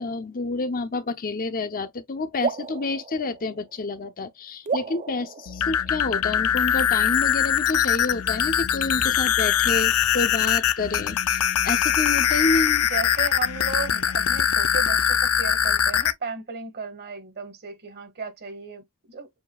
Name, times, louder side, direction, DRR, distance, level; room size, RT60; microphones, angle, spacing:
voice 1, 0.0-12.9, left 3 dB, 40° left, 0.7 m, -29 dB
sound 1, 2.4-4.1 4.7-6.4, right 5 dB, 35° right, 0.5 m, -33 dB
sound 2, 5.5-16.1, left 10 dB, 80° left, 0.6 m, -22 dB
voice 2, 12.9-19.3, right 4 dB, 50° right, 1.8 m, -35 dB
7.1 x 2.7 x 2.3 m
head